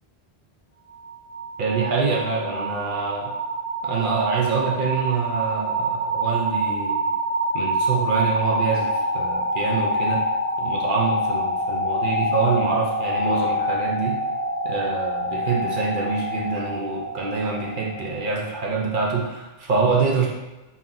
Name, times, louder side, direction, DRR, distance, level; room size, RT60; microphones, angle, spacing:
sound 1, 0.9-18.8, equal, 45° left, 1.2 m, -26 dB
voice 1, 1.6-3.3 3.8-7.1 7.5-10.2 10.6-14.2 14.6-20.3, right 4 dB, 55° right, -2 dB, 0.8 m, -25 dB
4.2 x 2.9 x 3.7 m, 1.1 s
omnidirectional pair, 1.0 m